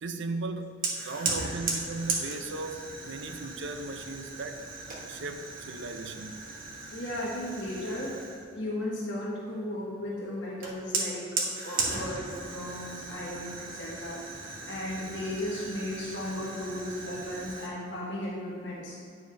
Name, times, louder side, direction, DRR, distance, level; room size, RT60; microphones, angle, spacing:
voice 1, 0.0-4.7 5.1-6.5, right 3 dB, 55° right, 0.6 m, -37 dB
Fire, 0.8-8.5 10.6-17.7, right 3 dB, 40° right, 1.2 m, -36 dB
voice 2, 6.9-8.2 8.5-14.2 14.7-18.9, left 1 dB, 60° left, 1.3 m, -35 dB
9.4 x 4.9 x 5.1 m
head